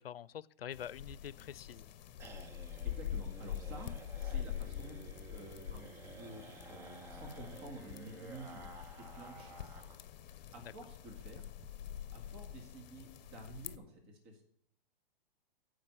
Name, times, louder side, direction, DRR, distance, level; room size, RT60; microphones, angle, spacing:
voice 1, 0.0-1.9 10.6-10.7, left 9 dB, 80° left, 20 dB, 0.5 m, -46 dB
sound 1, 0.7-13.8, left 10 dB, 50° left, 0.8 m, -45 dB
sound 2, 1.0-10.1 10.4-10.5 10.8-10.9 11.2-11.7, right 3 dB, 10° right, 0.4 m, -53 dB
voice 2, 2.8-11.5 12.1-14.5, right 1 dB, 30° right, 3 dB, 2.0 m, -51 dB
9.1 x 5.1 x 6.7 m, 0.67 s
hypercardioid pair, 125°, 29 cm